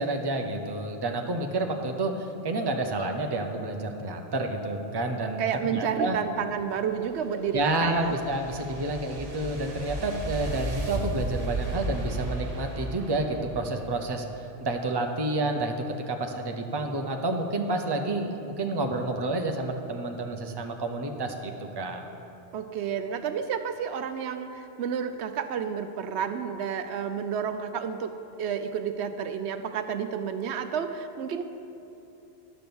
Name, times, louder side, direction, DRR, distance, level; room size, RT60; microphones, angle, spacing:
voice 1, 0.0-6.2 7.5-14.2 14.6-15.7 16.1-22.0, right 2 dB, 25° right, 3 dB, 0.7 m, -29 dB
voice 2, 5.4-8.1 22.5-31.4, right 7 dB, 80° right, 9 dB, 0.9 m, -31 dB
sound 1, 6.9-14.2, right 1 dB, 55° right, 1.6 m, -35 dB
11.0 x 6.1 x 7.0 m, 3.0 s
omnidirectional pair, 1.1 m